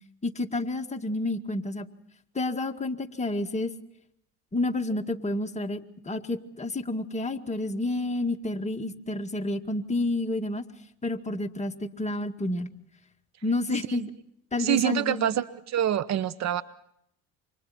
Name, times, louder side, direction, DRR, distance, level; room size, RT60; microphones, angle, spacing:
voice 1, 0.2-1.9 2.3-3.7 4.5-10.6 11.0-12.7 13.4-14.0 14.5-15.3, left 2 dB, 20° left, 2.1 m, -30 dB
voice 2, 14.6-16.6, right 11 dB, 50° right, 1.2 m, -26 dB
29.0 x 26.0 x 4.4 m
supercardioid pair, 90°, 35 cm